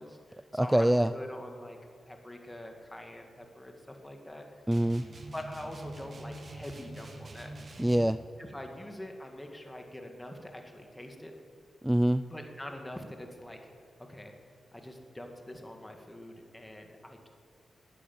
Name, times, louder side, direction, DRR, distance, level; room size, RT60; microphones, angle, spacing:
voice 1, 0.0-1.8 2.1-4.4 5.3-7.9 8.4-11.3 12.3-13.6 14.1-14.3 14.7-17.3, left 1 dB, 10° left, 3 dB, 2.0 m, -44 dB
voice 2, 0.5-1.1 4.7-5.0 7.8-8.2 11.8-12.2, right 1 dB, 5° right, 13 dB, 0.3 m, -24 dB
sound 1, 4.7-8.2, right 2 dB, 45° right, 2.2 m, -45 dB
18.5 x 10.0 x 7.2 m, 2.3 s
cardioid pair, 75°, 0 cm